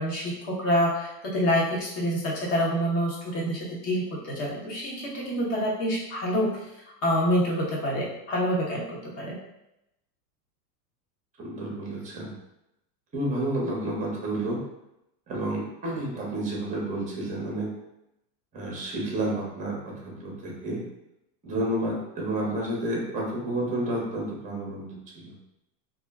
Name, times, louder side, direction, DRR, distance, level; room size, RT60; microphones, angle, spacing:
voice 1, 0.0-6.7 7.0-9.4, equal, 30° left, -3 dB, 0.7 m, -27 dB
voice 2, 11.4-12.4 13.1-14.6 15.3-17.7 18.5-20.8 21.4-25.3, right 1 dB, 15° right, -2 dB, 0.6 m, -30 dB
2.3 x 2.0 x 3.3 m, 0.86 s
supercardioid pair, 130°, 50 cm